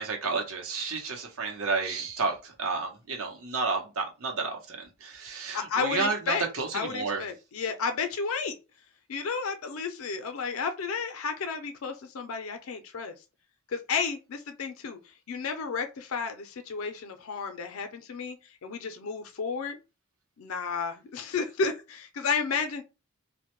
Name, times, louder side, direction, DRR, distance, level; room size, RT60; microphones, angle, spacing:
voice 1, 0.0-7.2, right 4 dB, 80° right, 0.8 m, -31 dB
voice 2, 5.5-6.5 6.7-8.6 9.1-13.1 13.7-15.0 15.3-18.4 18.6-19.8 20.4-22.8, left 5 dB, 85° left, 0.4 m, -32 dB
2.1 x 2.1 x 2.9 m
head